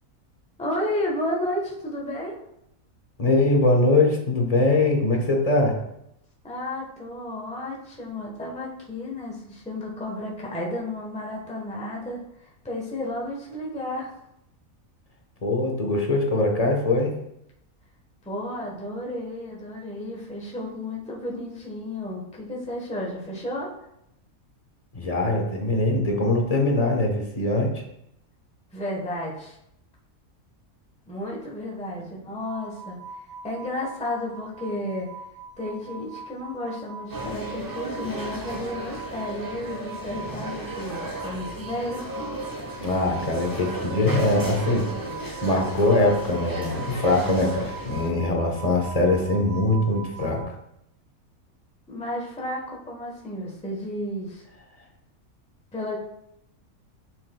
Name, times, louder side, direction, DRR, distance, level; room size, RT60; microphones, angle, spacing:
voice 1, 0.6-2.4 6.4-14.1 18.2-23.7 28.7-29.6 31.1-33.0 33.4-35.1 35.6-42.0 51.9-54.4 55.7-56.0, left 1 dB, 5° left, -2 dB, 1.0 m, -32 dB
voice 2, 3.2-5.8 15.4-17.1 24.9-27.8 42.8-44.9 45.4-50.4, left 2 dB, 30° left, 1 dB, 1.0 m, -22 dB
sound 1, 32.4-50.4, right 4 dB, 75° right, 2.0 m, -42 dB
sound 2, 37.1-48.1, right 1 dB, 20° right, 0.8 m, -35 dB
7.3 x 6.1 x 2.3 m, 0.78 s
omnidirectional pair, 1.5 m